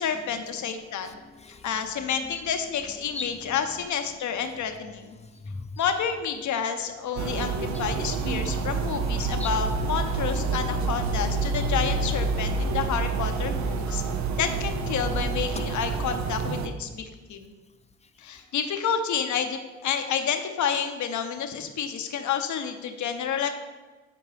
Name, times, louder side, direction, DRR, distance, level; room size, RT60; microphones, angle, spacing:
voice 1, 0.0-1.1 1.6-5.1 5.8-14.0 14.4-17.5 18.2-23.5, left 7 dB, 65° left, 7 dB, 0.9 m, -29 dB
voice 2, 0.7-1.7 2.0-2.3 3.1-4.0 4.4-4.5 5.2-5.8 7.7-7.8 9.4-9.5 15.5-15.6 18.0-18.3, left 3 dB, 20° left, 8 dB, 0.6 m, -41 dB
sound 1, 7.2-16.7, right 4 dB, 60° right, 0.7 m, -28 dB
10.0 x 4.5 x 3.4 m, 1.3 s
supercardioid pair, 50°, 32 cm